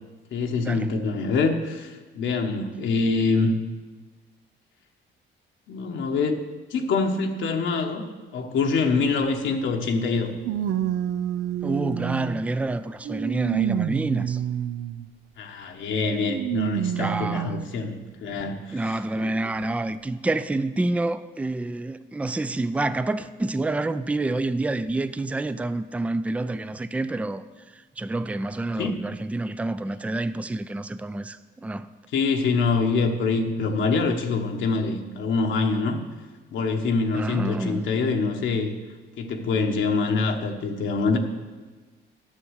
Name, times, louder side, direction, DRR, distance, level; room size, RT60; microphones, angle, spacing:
voice 1, 0.3-3.6 5.7-6.4 6.7-8.0 8.3-10.3 15.4-19.3 28.8-29.0 32.1-36.0 36.5-38.7 39.2-41.2, left 4 dB, 70° left, 1.1 m, -25 dB
sound 1, 9.2-9.3 10.4-12.5 13.0-15.1 16.3-17.7 18.4-18.5 19.6-19.7, right 10 dB, 80° right, 0.5 m, -28 dB
voice 2, 11.6-14.4 17.0-17.6 18.7-27.4 28.0-31.9 37.1-37.9, right 2 dB, 5° right, 0.4 m, -28 dB
10.0 x 7.0 x 6.4 m
cardioid pair, 90°, 20 cm